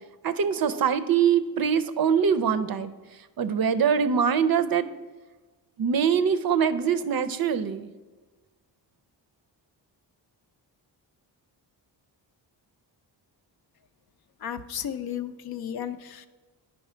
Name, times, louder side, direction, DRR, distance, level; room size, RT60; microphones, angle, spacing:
voice 1, 0.2-2.9 3.4-4.9 5.8-7.9, right 7 dB, 55° right, 12 dB, 0.5 m, -23 dB
voice 2, 14.4-16.3, left 9 dB, 55° left, 11 dB, 0.5 m, -34 dB
9.1 x 5.5 x 4.3 m, 1.3 s
cardioid pair, 100°, 44 cm